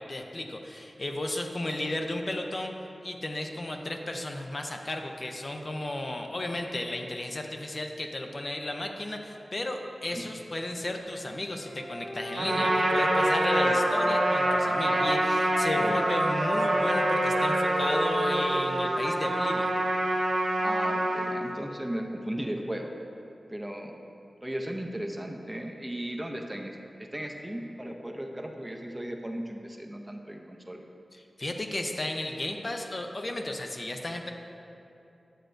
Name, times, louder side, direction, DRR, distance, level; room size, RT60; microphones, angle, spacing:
voice 1, 0.1-2.7 3.0-19.7 31.1-34.3, left 1 dB, 40° left, 3 dB, 0.6 m, -34 dB
Wind instrument woodwind instrument, 11.6-15.1 15.4-19.2, equal, 55° left, 1.7 m, -32 dB
Trumpet, 12.3-21.4, right 1 dB, 85° right, 1.0 m, -26 dB
voice 2, 20.6-22.9 23.5-23.9 24.4-30.8, right 1 dB, 10° right, 2 dB, 0.5 m, -36 dB
10.0 x 7.7 x 2.5 m, 2.8 s
wide cardioid pair, 100°, 0 cm